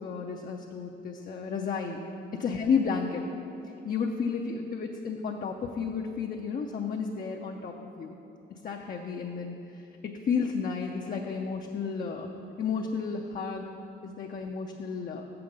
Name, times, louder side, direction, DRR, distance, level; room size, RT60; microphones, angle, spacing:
voice 1, 0.0-2.0 2.3-3.2 3.8-8.2 8.6-9.5 10.0-12.3 12.6-13.6 14.0-15.3, left 5 dB, 45° left, 0 dB, 0.6 m, -32 dB
6.9 x 6.9 x 5.2 m, 2.8 s
cardioid pair, 90°, 20 cm